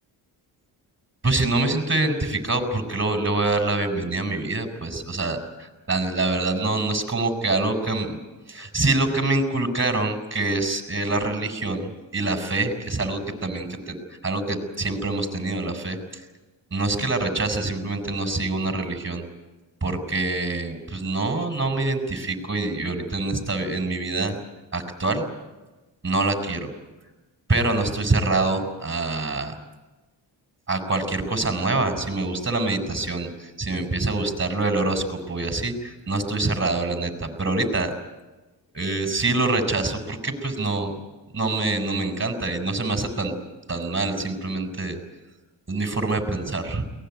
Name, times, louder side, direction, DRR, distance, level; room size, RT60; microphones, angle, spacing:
voice 1, 1.2-8.2 8.5-14.0 14.2-16.0 16.7-19.2 19.8-24.4 24.7-25.3 26.0-26.7 27.5-29.6 30.7-37.9 38.7-41.0 41.3-43.3 43.7-45.0 45.7-46.9, right 2 dB, 25° right, 5 dB, 6.8 m, -25 dB
23.0 x 20.0 x 9.5 m, 1.1 s
supercardioid pair, 50°, 47 cm